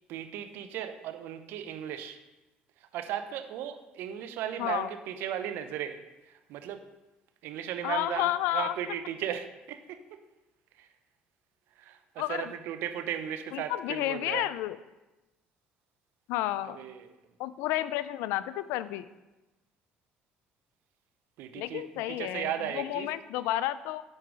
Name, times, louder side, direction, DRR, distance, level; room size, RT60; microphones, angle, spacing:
voice 1, 0.1-2.2 2.8-6.0 6.2-6.8 7.4-10.0 10.8-10.9 11.8-14.5 16.7-17.1 21.4-23.1, right 10 dB, 75° right, 9 dB, 0.7 m, -36 dB
voice 2, 4.6-4.9 7.8-8.7 12.2-12.5 13.5-14.8 16.3-16.8 17.4-19.0 21.6-24.0, left 14 dB, 80° left, 15 dB, 0.3 m, -31 dB
6.5 x 4.6 x 6.1 m, 1.0 s
supercardioid pair, 70°, 4 cm